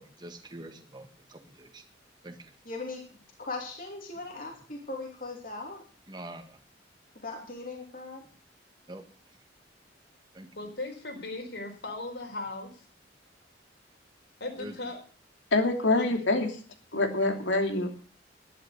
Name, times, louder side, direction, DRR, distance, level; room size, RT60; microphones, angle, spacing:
voice 1, 0.0-1.9 2.2-2.5 6.1-6.6 8.9-9.0 10.3-10.5 14.6-14.8, right 1 dB, 25° right, 6 dB, 1.6 m, -45 dB
voice 2, 2.6-3.0 3.4-5.8 7.1-8.3, left 3 dB, 45° left, 0 dB, 2.9 m, -39 dB
voice 3, 10.5-12.9 14.4-15.0 15.9-16.1, left 2 dB, 65° left, 3 dB, 4.3 m, -37 dB
voice 4, 15.5-16.5 16.9-18.1, left 2 dB, 85° left, 4 dB, 3.0 m, -26 dB
11.5 x 11.5 x 6.5 m, 0.41 s
head